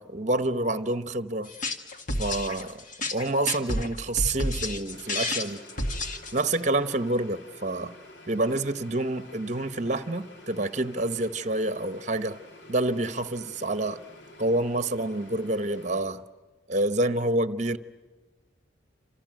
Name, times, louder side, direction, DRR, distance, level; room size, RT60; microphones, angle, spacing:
voice 1, 0.0-1.5 2.2-2.8 3.1-5.6 6.3-7.9 8.3-12.4 12.7-14.0 14.4-16.2 16.7-17.8, right 2 dB, 35° right, 1.0 m, -28 dB
sound 1, 1.4-6.6, left 1 dB, 40° left, 1.9 m, -30 dB
sound 2, 4.9-16.0, left 1 dB, 60° left, 2.9 m, -49 dB
28.0 x 27.5 x 7.7 m
head